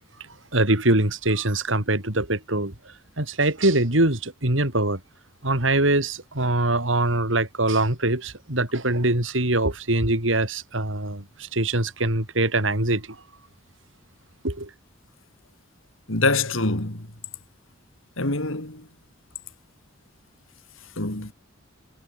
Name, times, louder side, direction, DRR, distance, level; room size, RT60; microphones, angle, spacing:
voice 1, 0.5-2.7 3.2-5.0 5.4-13.1 14.4-14.7, right 2 dB, 65° right, 4.2 m, -23 dB
voice 2, 16.1-17.1 18.2-18.8 21.0-21.3, left 3 dB, 75° left, 4.2 m, -25 dB
head